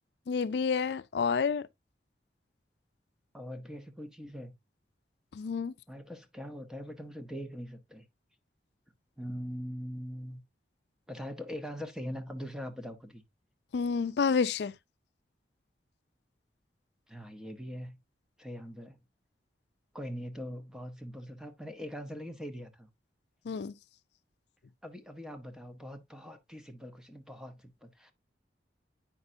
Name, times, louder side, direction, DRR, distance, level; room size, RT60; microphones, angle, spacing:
voice 1, 0.3-1.6 5.4-5.7 13.7-14.7 23.5-23.7, left 5 dB, 70° left, 0.4 m, -29 dB
voice 2, 3.3-4.5 5.9-8.0 9.2-10.4 11.1-13.2 17.1-18.0 18.4-19.0 19.9-22.9 24.8-28.1, equal, 5° right, 0.9 m, -42 dB
8.8 x 5.5 x 2.7 m
head